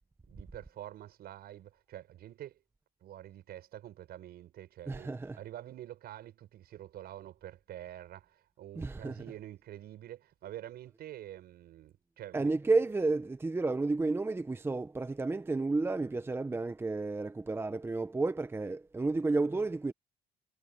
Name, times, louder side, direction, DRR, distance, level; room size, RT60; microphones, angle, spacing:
voice 1, 0.3-2.6 3.0-12.5, right 12 dB, 70° right, 7.1 m, -47 dB
voice 2, 4.9-5.4 8.8-9.3 12.3-19.9, right 3 dB, 15° right, 0.8 m, -31 dB
cardioid pair, 110°, 17 cm